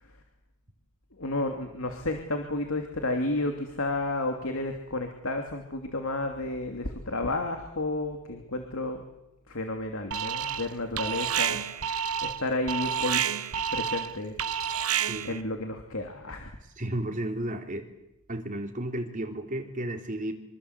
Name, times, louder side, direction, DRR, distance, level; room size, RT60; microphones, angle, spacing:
voice 1, 1.2-9.0 9.5-11.6 12.2-13.2 13.7-14.4 15.2-16.5, left 2 dB, 70° left, 4 dB, 2.8 m, -31 dB
Alarm, 10.1-10.7 11.0-15.4, right 8 dB, 85° right, 1.1 m, -29 dB
voice 2, 15.1-15.4 16.8-17.9 18.3-20.3, right 1 dB, 35° right, 4 dB, 3.6 m, -33 dB
26.0 x 25.0 x 8.2 m, 0.89 s
head